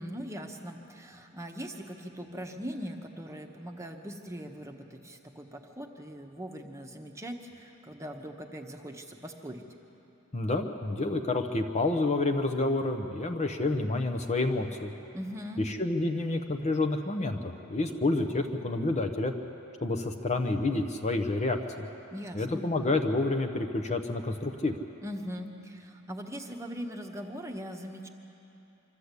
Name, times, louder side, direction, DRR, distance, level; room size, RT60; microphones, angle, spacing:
voice 1, 0.0-9.7 15.1-15.6 22.1-22.6 25.0-28.1, equal, 15° right, 2 dB, 1.1 m, -40 dB
voice 2, 10.3-14.9 15.7-19.3 19.8-21.9 22.3-24.7, left 2 dB, 30° left, 5 dB, 0.9 m, -29 dB
24.5 x 13.5 x 8.2 m, 3.0 s
head